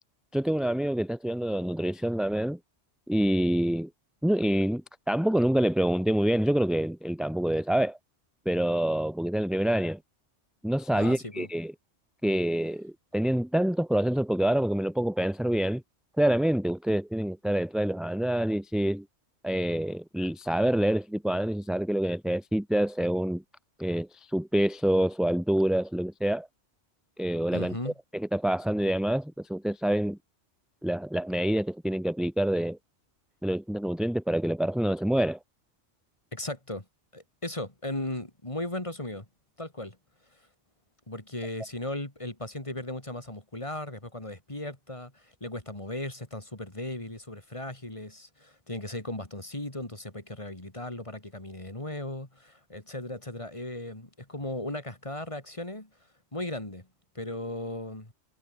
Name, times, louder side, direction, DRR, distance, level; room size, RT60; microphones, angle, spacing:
voice 1, 0.3-2.6 3.1-3.9 4.2-8.0 8.5-10.0 10.6-11.7 12.2-15.8 16.2-19.0 19.4-23.4 23.8-24.1 24.3-26.5 27.2-27.8 28.1-30.2 30.8-32.8 33.4-35.4, right 1 dB, ahead, 0.8 m, -26 dB
voice 2, 10.9-11.5 27.5-27.9 36.3-36.9 37.1-39.3 39.6-40.0 40.3-40.5 41.1-55.9 56.3-56.9 57.2-58.1, left 1 dB, 25° left, 3.4 m, -37 dB
omnidirectional pair, 1.2 m